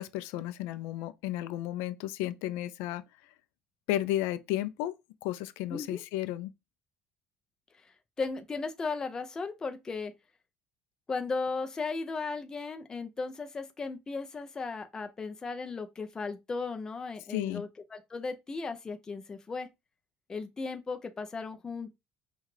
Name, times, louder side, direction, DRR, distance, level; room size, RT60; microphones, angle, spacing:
voice 1, 0.0-3.0 3.9-4.9 5.2-6.5 17.3-17.6, left 14 dB, 85° left, 0.4 m, -33 dB
voice 2, 5.7-6.0 8.2-10.1 11.1-19.7 20.3-22.0, left 4 dB, 15° left, 0.5 m, -36 dB
5.5 x 2.3 x 3.1 m
cardioid pair, 160°, 4 cm